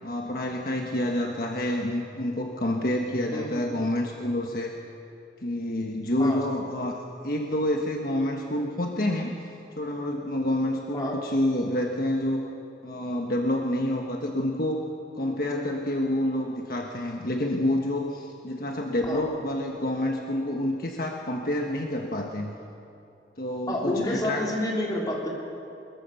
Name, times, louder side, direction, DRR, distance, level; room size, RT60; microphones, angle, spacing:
voice 1, 0.0-4.7 5.4-9.3 9.8-12.5 12.8-14.8 15.1-22.5 23.4-24.5, left 1 dB, 55° left, 1 dB, 1.4 m, -28 dB
voice 2, 3.3-3.7 6.2-6.4 10.9-11.2 19.0-19.2 23.7-25.3, left 1 dB, 20° left, -2 dB, 3.8 m, -29 dB
21.5 x 21.5 x 7.0 m, 2.6 s
head